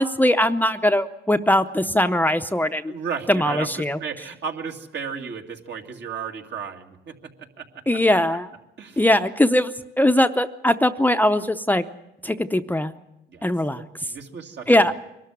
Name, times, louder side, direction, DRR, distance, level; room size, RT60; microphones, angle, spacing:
voice 1, 0.0-2.9 3.3-4.0 7.9-8.5 9.0-11.8 12.2-12.9 13.4-13.9 14.7-14.9, left 1 dB, 10° left, 8 dB, 0.7 m, -20 dB
voice 2, 2.9-7.1 7.6-7.7 8.8-9.0 13.3-14.9, right 6 dB, 60° right, 3 dB, 2.3 m, -34 dB
23.0 x 13.0 x 9.8 m, 0.91 s
cardioid pair, 90°, 20 cm